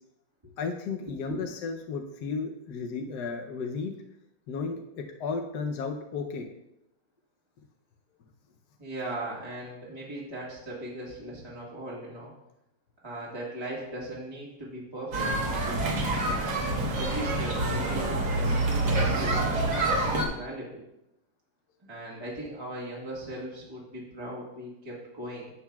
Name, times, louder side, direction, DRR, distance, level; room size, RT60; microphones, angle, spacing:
voice 1, 0.6-3.9 4.5-6.5, left 4 dB, 65° left, 3 dB, 1.1 m, -34 dB
voice 2, 8.8-12.3 13.0-16.4 17.0-20.8 21.8-25.5, right 1 dB, 15° right, -6 dB, 1.4 m, -39 dB
sound 1, 15.1-20.2, right 2 dB, 55° right, 1.8 m, -27 dB
11.5 x 7.8 x 2.3 m, 0.86 s
omnidirectional pair, 2.3 m